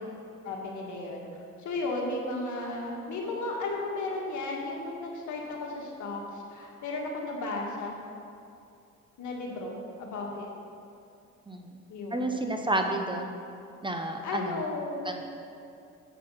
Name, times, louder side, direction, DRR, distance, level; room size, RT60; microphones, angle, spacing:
voice 1, 0.4-1.2 1.6-8.0 9.2-10.5 11.9-12.3 14.2-15.1, left 2 dB, 70° left, -1 dB, 1.7 m, -34 dB
voice 2, 11.5-11.8 12.1-13.3 13.8-14.6 15.1-15.2, right 1 dB, 15° right, 4 dB, 0.7 m, -30 dB
7.8 x 5.9 x 6.3 m, 2.6 s
cardioid pair, 90°, 30 cm